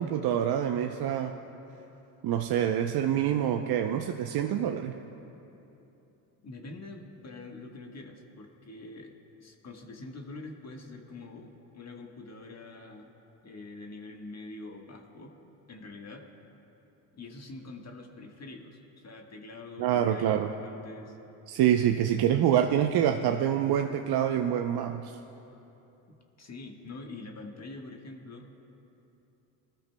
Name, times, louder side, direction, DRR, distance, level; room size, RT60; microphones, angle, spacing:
voice 1, 0.0-1.3 2.2-5.0 19.8-20.5 21.5-25.2, right 10 dB, 50° right, 5 dB, 0.7 m, -26 dB
voice 2, 6.4-9.1 9.4-13.1 13.4-15.4 15.7-16.3 17.1-21.2 22.1-22.6 26.1-28.6, left 2 dB, 35° left, 2 dB, 1.4 m, -45 dB
19.5 x 13.0 x 2.2 m, 2.9 s
supercardioid pair, 70°, 47 cm